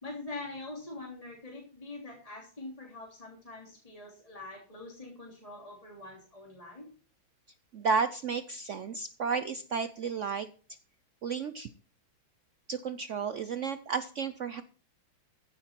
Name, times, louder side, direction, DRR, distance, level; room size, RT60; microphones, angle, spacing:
voice 1, 0.0-6.9, left 2 dB, 15° left, -2 dB, 3.2 m, -44 dB
voice 2, 7.7-10.5 11.2-11.7 12.7-14.6, right 5 dB, 90° right, 11 dB, 0.6 m, -32 dB
15.5 x 7.9 x 4.5 m, 0.41 s
omnidirectional pair, 2.2 m